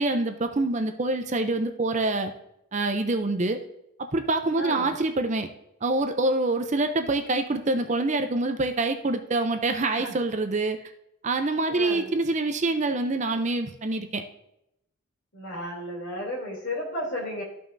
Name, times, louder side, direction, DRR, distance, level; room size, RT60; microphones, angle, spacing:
voice 1, 0.0-2.3 2.7-3.6 4.0-5.5 5.8-10.8 11.2-14.2, right 2 dB, 35° right, 6 dB, 0.6 m, -26 dB
voice 2, 4.6-4.9 9.9-10.1 11.7-12.1 15.3-17.4, left 1 dB, 60° left, -3 dB, 3.2 m, -33 dB
13.5 x 5.5 x 2.7 m, 0.81 s
head